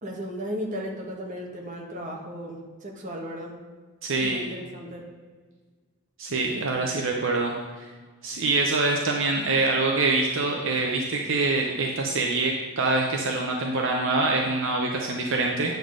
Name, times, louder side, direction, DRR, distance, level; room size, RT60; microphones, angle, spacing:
voice 1, 0.0-3.5 4.2-5.1, equal, 35° right, 0 dB, 1.2 m, -35 dB
voice 2, 4.0-4.4 6.2-7.9 8.2-15.7, right 3 dB, 60° right, 0 dB, 0.8 m, -25 dB
9.2 x 3.9 x 6.3 m, 1.4 s
head